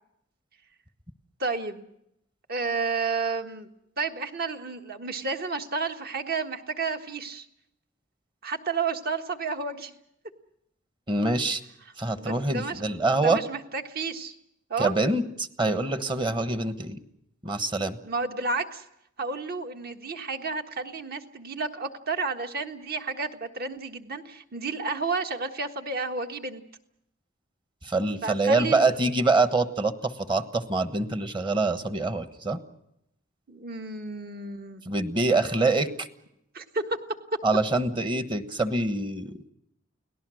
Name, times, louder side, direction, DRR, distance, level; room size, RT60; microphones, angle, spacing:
voice 1, 1.4-1.9 2.5-3.7 4.0-7.5 8.4-9.9 12.1-12.8 13.1-14.3 14.7-14.9 18.0-18.8 19.2-26.6 28.2-29.1 33.5-34.8 36.5-37.0, right 4 dB, 50° right, 6 dB, 1.5 m, -31 dB
voice 2, 11.1-11.6 12.0-13.4 14.8-17.0 17.4-18.0 27.8-32.6 34.9-36.1 37.4-39.5, right 3 dB, 25° right, 10 dB, 1.2 m, -25 dB
30.0 x 18.5 x 6.4 m, 0.79 s
head